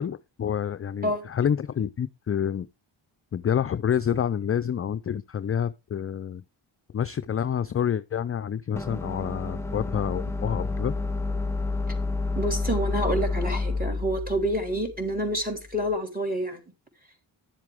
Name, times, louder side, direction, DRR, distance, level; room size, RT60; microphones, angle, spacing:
voice 1, 0.0-2.7 3.3-6.4 6.9-10.9, left 8 dB, 30° left, 0.4 m, -28 dB
sound 1, 8.8-15.8, left 3 dB, 5° left, 0.8 m, -30 dB
voice 2, 12.4-16.6, equal, 15° right, 3.5 m, -28 dB
10.5 x 7.5 x 3.5 m
cardioid pair, 55°, 50 cm